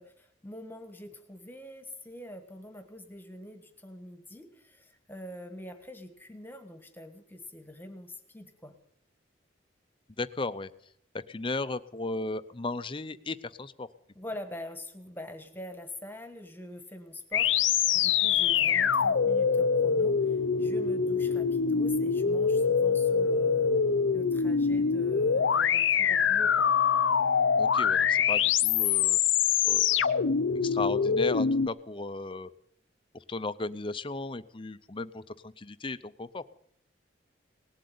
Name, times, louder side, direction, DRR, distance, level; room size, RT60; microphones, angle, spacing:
voice 1, 0.0-8.7 14.1-23.7 24.1-26.7, left 1 dB, 10° left, 7 dB, 1.4 m, -44 dB
voice 2, 10.2-10.7 11.1-13.9 27.6-29.2 29.7-30.0 30.6-32.5 33.1-36.5, left 3 dB, 25° left, 13 dB, 0.6 m, -35 dB
sound 1, 17.3-31.7, left 6 dB, 75° left, 0.6 m, -25 dB
19.0 x 7.9 x 9.4 m, 0.69 s
head